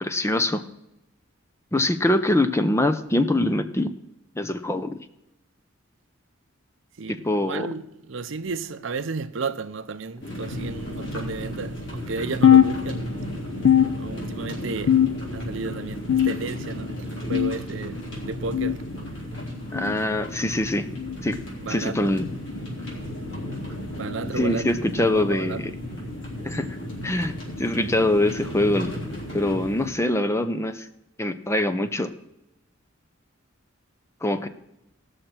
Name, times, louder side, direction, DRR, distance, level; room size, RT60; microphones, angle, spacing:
voice 1, 0.0-0.6 1.7-3.9 4.4-5.0 7.1-7.7 19.7-20.9 21.2-21.4 21.7-22.3 24.4-25.7 26.4-26.7 27.0-28.9 29.3-30.9 31.2-32.1 34.2-34.5, left 1 dB, 15° left, 0.6 m, -23 dB
voice 2, 7.0-13.1 14.0-15.0 15.3-18.8 21.6-22.2 24.0-25.6, right 4 dB, 70° right, 0.6 m, -33 dB
sound 1, 10.2-29.9, equal, 65° left, 3.4 m, -34 dB
sound 2, 12.4-13.3 13.6-14.4 14.9-15.5 16.1-16.7 17.3-17.7 18.5-18.8 19.7-20.0 21.0-21.2 22.2-22.4 23.4-23.6 24.6-24.8 25.8-25.9 27.1-27.2, left 9 dB, 85° left, 0.4 m, -21 dB
19.0 x 6.5 x 4.4 m
head